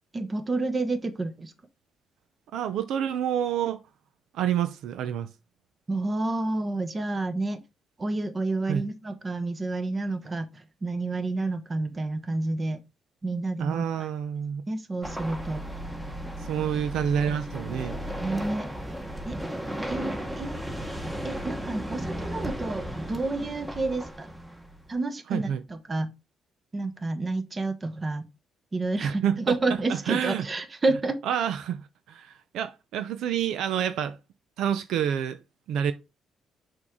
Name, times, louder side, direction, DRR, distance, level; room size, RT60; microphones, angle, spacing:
voice 1, 0.1-1.5 5.9-7.6 8.0-12.8 13.2-14.1 14.7-15.6 18.2-18.7 19.2-19.4 19.9-20.7 21.2-24.3 24.9-26.1 26.7-28.3 28.7-31.2, right 2 dB, 30° right, 1.1 m, -29 dB
voice 2, 2.5-3.8 4.3-5.3 8.7-8.9 13.6-14.6 16.4-18.0 25.3-25.6 29.0-29.5 29.9-30.5 31.3-34.2 34.6-35.4 35.7-35.9, right 9 dB, 80° right, 0.5 m, -28 dB
sound 1, 15.0-24.9, equal, 15° right, 1.6 m, -35 dB
6.1 x 4.6 x 3.8 m
cardioid pair, 90°, 0 cm